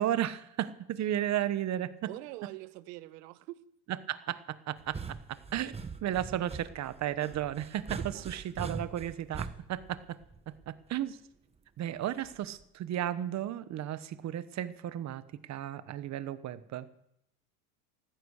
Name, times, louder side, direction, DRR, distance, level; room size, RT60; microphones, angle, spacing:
voice 1, 0.0-2.1 3.9-5.0 5.5-5.7 6.0-8.0 8.3-10.2 10.7-11.2 11.8-15.2 15.5-16.9, right 11 dB, 35° right, 14 dB, 1.1 m, -34 dB
voice 2, 2.1-3.6 8.0-8.4, right 18 dB, 80° right, 15 dB, 1.2 m, -44 dB
sound 1, 4.8-10.9 12.2-12.6, right 4 dB, 10° right, 1.1 m, -42 dB
15.0 x 14.0 x 6.5 m, 0.79 s
supercardioid pair, 130°, 48 cm